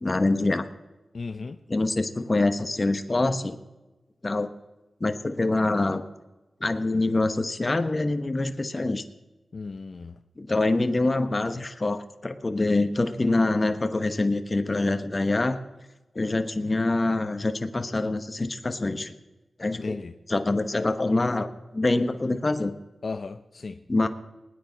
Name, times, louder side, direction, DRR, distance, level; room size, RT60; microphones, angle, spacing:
voice 1, 0.0-0.7 1.7-3.6 4.2-4.5 5.0-6.0 6.6-9.0 10.4-15.6 16.1-19.1 19.6-21.5 21.7-22.7 23.9-24.1, left 2 dB, 35° left, 1.1 m, -25 dB
voice 2, 1.1-1.6 9.5-10.1 19.6-20.1 23.0-23.8, left 4 dB, 60° left, 0.6 m, -36 dB
20.0 x 9.6 x 4.0 m
cardioid pair, 50°, 0 cm